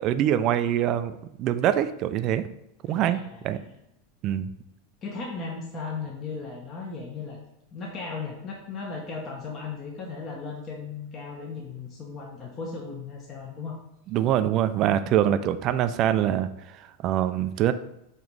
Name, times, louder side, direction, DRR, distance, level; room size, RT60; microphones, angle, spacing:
voice 1, 0.0-2.5 2.9-3.6 4.2-4.5 14.1-17.7, right 11 dB, 35° right, 11 dB, 0.4 m, -24 dB
voice 2, 2.9-3.6 5.0-7.4 7.7-13.8, left 4 dB, 25° left, -1 dB, 1.0 m, -36 dB
7.8 x 3.1 x 5.3 m, 0.82 s
supercardioid pair, 160°, 0 cm